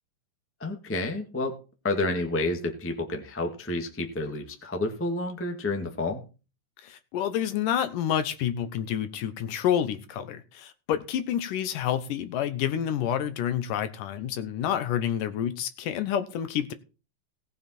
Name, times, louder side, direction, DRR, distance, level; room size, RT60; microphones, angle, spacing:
voice 1, 0.6-1.6 1.8-6.2, left 2 dB, 10° left, 0.8 m, -30 dB
voice 2, 6.8-16.7, left 10 dB, 75° left, 2.5 m, -28 dB
18.0 x 7.2 x 4.4 m
omnidirectional pair, 4.0 m